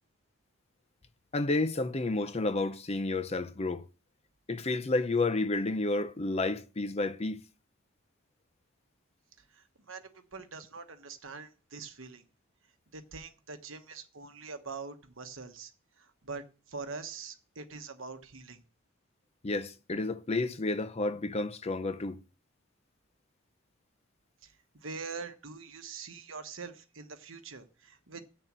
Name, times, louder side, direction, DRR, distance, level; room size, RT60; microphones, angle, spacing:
voice 1, 1.3-3.8 4.5-7.4 19.4-22.2, left 2 dB, 30° left, 0.6 m, -31 dB
voice 2, 9.5-12.2 12.9-15.7 16.0-18.6 24.4-28.2, right 4 dB, 60° right, 1.2 m, -44 dB
7.4 x 6.7 x 7.4 m
head